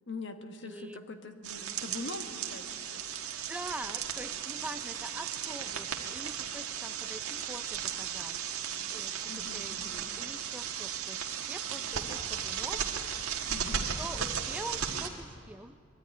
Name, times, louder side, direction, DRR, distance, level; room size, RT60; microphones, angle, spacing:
voice 1, 0.1-3.1 9.3-10.0 13.5-13.9, left 3 dB, 55° left, 7 dB, 1.3 m, -43 dB
voice 2, 0.6-1.0 3.5-8.6 8.9-12.9 14.0-15.8, right 1 dB, 5° right, 9 dB, 0.4 m, -44 dB
sound 1, 1.4-15.1, right 8 dB, 90° right, 1.6 m, -36 dB
21.5 x 13.0 x 9.9 m, 2.5 s
head